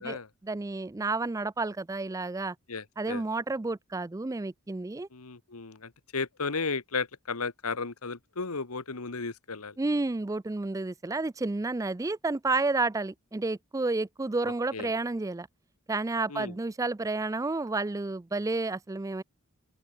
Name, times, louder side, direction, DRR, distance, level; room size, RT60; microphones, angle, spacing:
voice 1, 0.4-2.6 3.0-5.1 9.8-15.5 15.9-19.2, right 3 dB, 15° right, 0.3 m, -30 dB
voice 2, 2.7-3.2 5.1-9.8 14.4-14.9 16.3-16.6, left 4 dB, 85° left, 1.5 m, -35 dB
open air
head